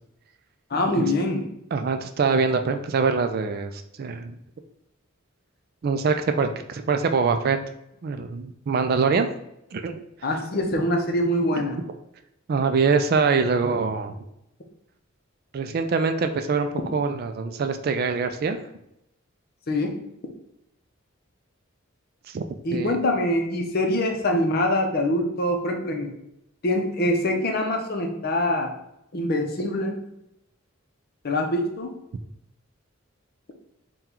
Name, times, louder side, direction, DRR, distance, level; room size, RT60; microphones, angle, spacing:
voice 1, 0.7-1.4 10.2-11.8 19.7-19.9 22.6-26.1 26.6-28.7 29.1-30.0 31.2-31.9, left 1 dB, 50° left, 3 dB, 0.6 m, -24 dB
voice 2, 1.7-3.7 4.0-4.3 5.8-7.6 8.0-9.3 9.7-10.0 12.5-14.1 15.5-18.6 22.3-22.4 22.7-23.0, right 5 dB, 50° right, 7 dB, 0.3 m, -24 dB
3.8 x 2.3 x 4.3 m, 0.82 s
head